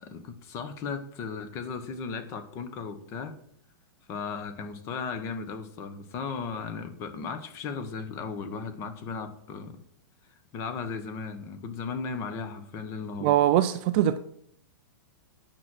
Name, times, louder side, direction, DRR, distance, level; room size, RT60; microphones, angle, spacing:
voice 1, 0.0-3.3 4.1-9.8 10.5-13.3, left 5 dB, 25° left, 9 dB, 1.0 m, -36 dB
voice 2, 13.2-14.2, right 12 dB, 30° right, 12 dB, 0.4 m, -22 dB
9.2 x 6.0 x 6.3 m, 0.67 s
hypercardioid pair, 165°, 12 cm